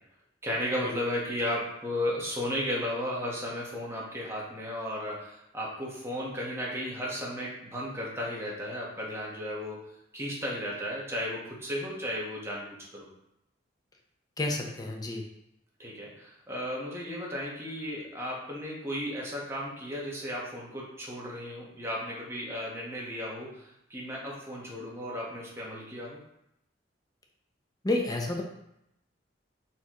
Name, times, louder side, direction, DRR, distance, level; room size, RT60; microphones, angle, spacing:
voice 1, 0.4-9.8 10.1-13.1 15.8-26.2, equal, 15° right, -4 dB, 1.2 m, -34 dB
voice 2, 14.4-15.2 27.8-28.4, left 2 dB, 20° left, 1 dB, 0.7 m, -30 dB
4.3 x 3.9 x 3.0 m, 0.80 s
head